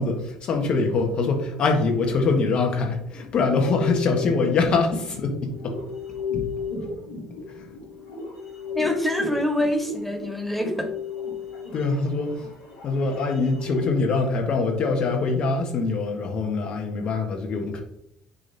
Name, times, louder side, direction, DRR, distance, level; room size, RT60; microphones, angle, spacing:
voice 1, 0.0-5.8 6.3-6.5 7.5-7.7 11.7-12.5 12.8-17.8, left 3 dB, 50° left, 3 dB, 1.8 m, -24 dB
sound 1, 3.4-13.9, left 5 dB, 75° left, 2.3 m, -34 dB
voice 2, 8.7-10.9, left 1 dB, 5° left, 5 dB, 1.8 m, -25 dB
9.7 x 3.4 x 4.2 m, 0.75 s
figure-of-eight pair, 55°, 2 cm